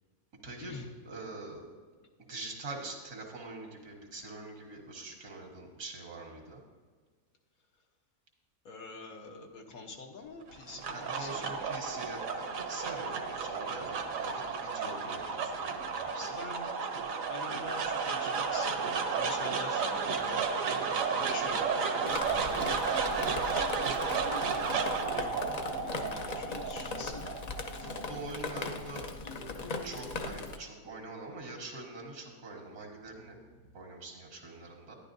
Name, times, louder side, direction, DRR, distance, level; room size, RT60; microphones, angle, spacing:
voice 1, 0.4-0.8 1.0-1.7 2.3-6.6 10.9-16.4 20.7-21.0 27.8-29.1 29.8-33.4 33.7-35.0, right 2 dB, 85° right, 1 dB, 2.0 m, -44 dB
voice 2, 8.6-11.6 16.1-16.6 17.3-20.5 20.9-22.0 22.5-23.1 24.7-25.4 25.7-27.2, left 3 dB, 75° left, 1 dB, 1.6 m, -46 dB
sound 1, 10.5-28.8, right 5 dB, 70° right, 1.2 m, -33 dB
Drip, 22.1-30.6, left 3 dB, 55° left, 0.4 m, -39 dB
11.5 x 10.5 x 2.6 m, 1.5 s
omnidirectional pair, 1.5 m